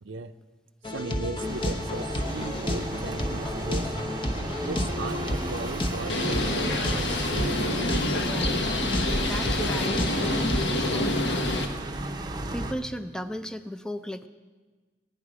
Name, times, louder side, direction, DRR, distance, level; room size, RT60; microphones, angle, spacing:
voice 1, 0.0-0.3 0.9-3.9 4.7-7.6, right 3 dB, 85° right, 11 dB, 0.6 m, -37 dB
sound 1, 0.8-11.0, left 1 dB, 25° left, 0.9 m, -31 dB
sound 2, 1.4-12.7, right 2 dB, 20° right, 0.7 m, -35 dB
voice 2, 4.8-5.1 8.2-8.7 9.2-11.7 12.5-14.3, equal, 5° left, 9 dB, 0.4 m, -36 dB
Bird, 6.1-11.7, left 1 dB, 70° left, 1.2 m, -27 dB
16.5 x 10.5 x 4.9 m, 1.4 s
head